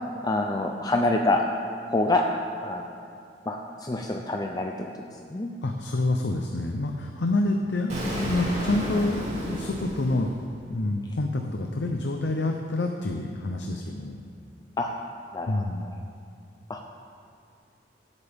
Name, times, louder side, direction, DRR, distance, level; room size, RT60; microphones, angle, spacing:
voice 1, 0.2-1.4 1.9-2.2 2.6-2.8 3.5-4.9 5.3-5.5 14.8-14.9 15.3-15.6 16.7-16.8, left 2 dB, 20° left, 2 dB, 0.5 m, -26 dB
voice 2, 5.6-9.2 9.5-10.3 10.7-14.2 15.5-15.8, left 2 dB, 85° left, 3 dB, 0.7 m, -27 dB
Explosion, 7.9-10.8, equal, 40° right, 2.3 m, -32 dB
17.0 x 8.3 x 3.6 m, 2.5 s
head